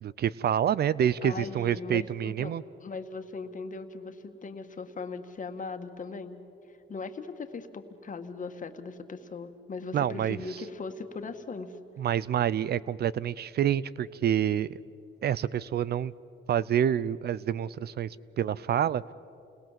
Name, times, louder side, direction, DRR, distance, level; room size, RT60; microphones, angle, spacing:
voice 1, 0.0-2.6 9.9-10.4 12.0-14.8 15.2-16.1 16.5-19.0, right 10 dB, 55° right, 20 dB, 0.5 m, -27 dB
voice 2, 1.2-2.5 2.8-6.4 6.9-11.8, left 4 dB, 40° left, 6 dB, 1.9 m, -39 dB
29.0 x 20.5 x 7.6 m, 2.8 s
cardioid pair, 90°, 20 cm